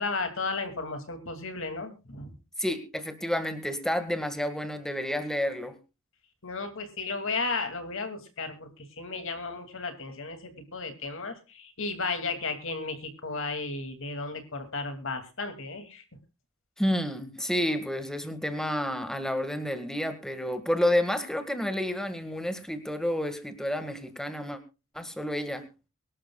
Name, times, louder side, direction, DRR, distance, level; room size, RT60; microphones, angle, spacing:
voice 1, 0.0-2.3 6.4-16.0, left 3 dB, 60° left, 7 dB, 2.5 m, -34 dB
voice 2, 2.6-5.8 16.8-24.6 24.9-25.7, left 1 dB, ahead, 8 dB, 1.8 m, -30 dB
24.0 x 12.5 x 2.3 m, 0.30 s
head